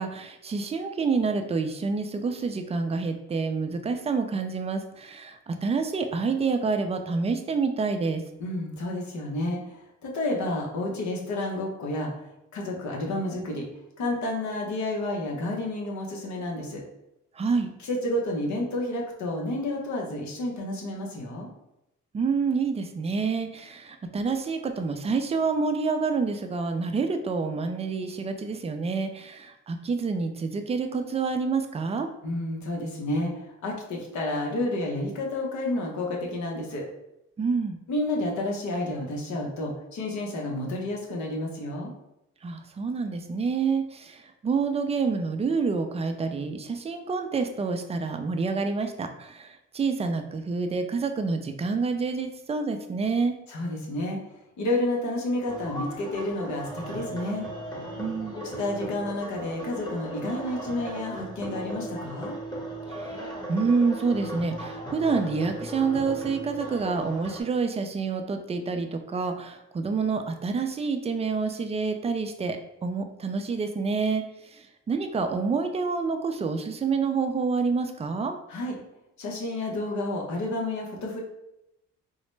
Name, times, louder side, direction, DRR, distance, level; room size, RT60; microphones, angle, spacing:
voice 1, 0.0-8.2 17.4-17.7 22.1-32.1 37.4-37.8 42.4-53.4 58.0-58.5 62.9-78.4, right 4 dB, 20° right, 6 dB, 0.4 m, -28 dB
voice 2, 8.4-12.1 12.5-13.6 14.0-16.8 17.8-21.5 32.2-36.9 37.9-41.9 53.5-54.2 54.6-57.5 58.3-62.3 78.5-78.8 79.2-81.2, left 1 dB, 70° left, -1 dB, 0.9 m, -30 dB
sound 1, 55.5-67.4, right 1 dB, 15° left, 1.0 m, -37 dB
3.8 x 2.1 x 3.2 m, 0.87 s
cardioid pair, 90°, 30 cm